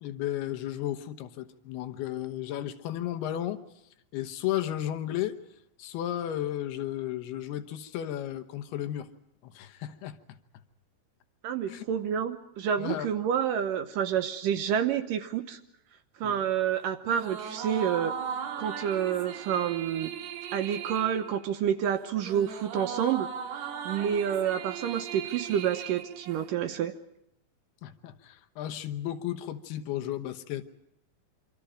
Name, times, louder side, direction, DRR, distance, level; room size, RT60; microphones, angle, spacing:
voice 1, 0.0-3.6 4.1-5.4 5.8-9.1 9.4-10.2 11.7-11.8 12.8-13.1 16.2-16.4 27.8-30.6, left 12 dB, 80° left, 9 dB, 3.1 m, -34 dB
voice 2, 11.4-15.6 16.2-18.1 18.6-20.1 20.5-26.9, right 9 dB, 70° right, 9 dB, 2.3 m, -29 dB
sound 1, 17.0-26.8, right 7 dB, 90° right, 3.9 m, -38 dB
26.5 x 25.0 x 5.1 m, 0.81 s
omnidirectional pair, 4.5 m